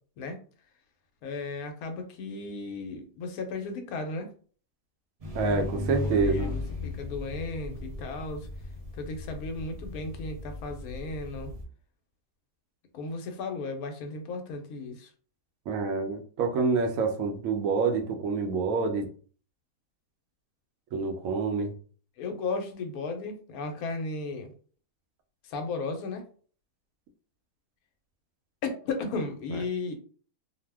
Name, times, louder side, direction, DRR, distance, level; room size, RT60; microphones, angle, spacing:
voice 1, 1.2-4.3 6.0-8.5 9.0-11.5 12.9-15.1 22.2-24.5 25.5-26.2 28.6-29.9, left 3 dB, 75° left, 6 dB, 1.1 m, -35 dB
sound 1, 5.2-11.6, left 2 dB, 45° right, 0.4 m, -36 dB
voice 2, 5.3-6.5 15.7-19.1 20.9-21.7 29.5-29.6, right 4 dB, 70° right, 4 dB, 0.9 m, -27 dB
2.6 x 2.1 x 3.3 m, 0.43 s
omnidirectional pair, 1.6 m